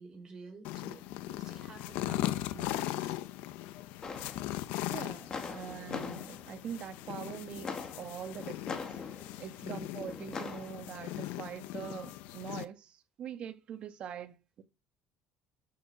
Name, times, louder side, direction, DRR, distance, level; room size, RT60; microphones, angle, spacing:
voice 1, 0.0-3.2 9.6-10.1, right 3 dB, 25° right, 6.1 m, -50 dB
sound 1, 0.6-12.6, left 15 dB, 80° left, 1.0 m, -39 dB
sound 2, 4.0-7.3 7.6-9.6 10.0-11.0 11.8-11.9, left 5 dB, 25° left, 2.5 m, -43 dB
voice 2, 4.8-9.0 9.3-14.6, right 8 dB, 45° right, 1.7 m, -43 dB
13.5 x 7.0 x 5.7 m
cardioid pair, 140°, 3 cm